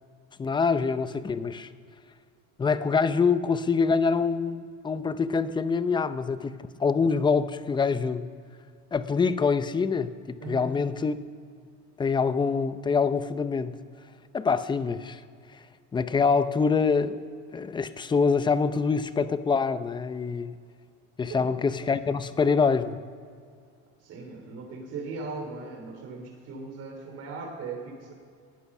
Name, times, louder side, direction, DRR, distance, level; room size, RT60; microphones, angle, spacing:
voice 1, 0.4-1.7 2.6-8.2 8.9-11.2 12.0-13.8 14.3-15.2 15.9-17.2 17.5-20.5 21.2-23.0, left 5 dB, 15° left, 12 dB, 0.6 m, -25 dB
voice 2, 21.3-21.6 24.0-28.1, right 4 dB, 50° right, 2 dB, 3.3 m, -38 dB
19.0 x 9.9 x 6.0 m, 2.2 s
cardioid pair, 135°, 31 cm